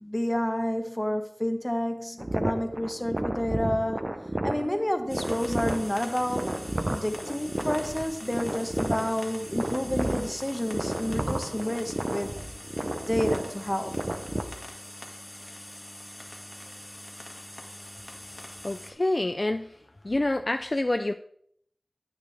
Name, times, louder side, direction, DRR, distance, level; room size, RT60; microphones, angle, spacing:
voice 1, 0.0-4.0 4.4-6.5 6.9-12.3 13.1-14.1, equal, 15° left, 7 dB, 1.1 m, -29 dB
sound 1, 2.2-14.4, right 1 dB, 40° right, 0.7 m, -32 dB
sound 2, 5.1-18.9, left 1 dB, 30° left, 1.7 m, -43 dB
voice 2, 18.6-19.8 20.0-21.1, left 2 dB, 45° left, 8 dB, 0.4 m, -27 dB
9.3 x 9.1 x 3.4 m, 0.66 s
wide cardioid pair, 45°, 0 cm